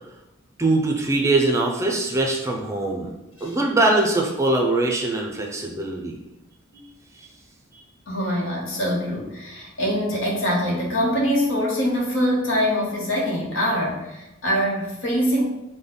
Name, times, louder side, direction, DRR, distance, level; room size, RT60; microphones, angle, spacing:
voice 1, 0.6-3.1 3.4-6.2, right 2 dB, 15° right, 0 dB, 0.5 m, -22 dB
voice 2, 8.1-15.4, equal, 70° left, -2 dB, 1.1 m, -24 dB
5.1 x 2.2 x 3.8 m, 0.93 s
head